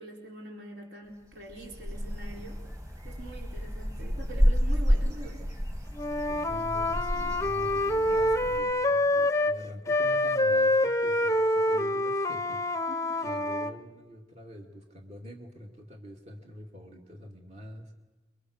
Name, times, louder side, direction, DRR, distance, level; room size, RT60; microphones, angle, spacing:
voice 1, 0.0-2.6 3.0-5.4 12.9-13.2, right 1 dB, 60° right, 0 dB, 5.0 m, -44 dB
sound 1, 1.3-8.6, equal, 20° right, 2.9 m, -30 dB
Wind instrument woodwind instrument, 5.9-9.6 9.9-13.7, left 1 dB, 15° left, 0.8 m, -26 dB
voice 2, 6.3-12.9 13.2-17.9, equal, 35° right, 2 dB, 2.5 m, -45 dB
30.0 x 22.5 x 6.6 m, 1.2 s
head